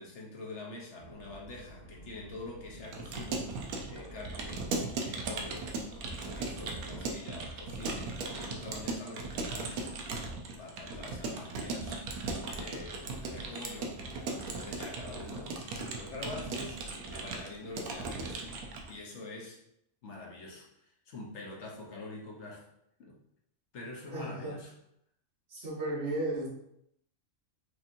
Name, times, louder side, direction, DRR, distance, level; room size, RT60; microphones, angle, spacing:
voice 1, 0.0-3.6 3.9-4.6 4.9-5.7 6.2-10.3 10.6-12.0 12.4-14.0 14.4-18.5 18.9-19.6 20.0-22.7 23.0-23.2 23.7-24.7, left 2 dB, 55° left, -2 dB, 1.1 m, -45 dB
sound 1, 1.0-7.1, right 1 dB, 45° right, 1.1 m, -50 dB
Keyboard (musical) / Computer keyboard, 2.8-18.9, right 3 dB, 90° right, 1.1 m, -38 dB
voice 2, 24.1-24.5 25.5-26.5, right 2 dB, 60° right, -6 dB, 1.7 m, -34 dB
5.0 x 2.8 x 2.6 m, 0.76 s
omnidirectional pair, 1.5 m